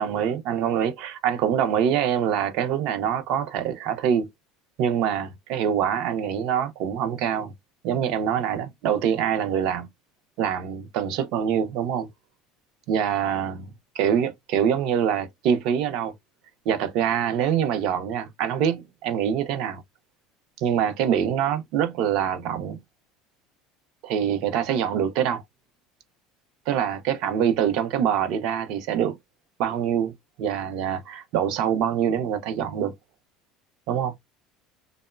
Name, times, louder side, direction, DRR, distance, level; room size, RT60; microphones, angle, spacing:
voice 1, 0.0-4.3 4.8-7.5 7.8-9.9 10.4-12.1 12.9-16.1 16.7-19.8 20.6-22.8 24.0-25.4 26.7-29.2 29.6-30.1 30.4-32.9 33.9-34.1, right 8 dB, 50° right, 0.5 m, -25 dB
3.0 x 2.0 x 2.3 m
cardioid pair, 175°, 0 cm